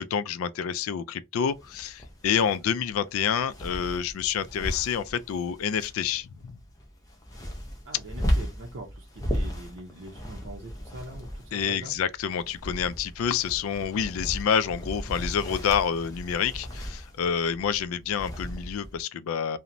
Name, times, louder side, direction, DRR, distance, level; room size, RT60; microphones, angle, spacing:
voice 1, 0.0-6.5 11.5-19.6, left 7 dB, 80° left, 0.3 m, -28 dB
sound 1, 1.5-19.0, equal, 15° left, 0.5 m, -36 dB
voice 2, 7.8-11.9, right 1 dB, 55° right, 0.6 m, -43 dB
2.9 x 2.1 x 2.5 m
head